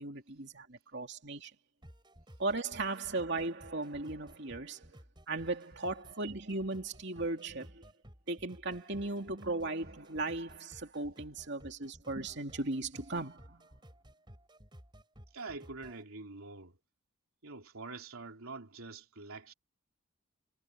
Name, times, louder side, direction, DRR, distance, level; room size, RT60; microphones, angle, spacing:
voice 1, 0.0-1.5 2.4-5.0 5.3-7.9 8.3-13.6, right 2 dB, 55° right, 2.9 m, -37 dB
sound 1, 1.8-16.0, equal, 20° right, 6.1 m, -56 dB
voice 2, 15.3-16.7 17.4-19.5, right 3 dB, 85° right, 3.1 m, -45 dB
head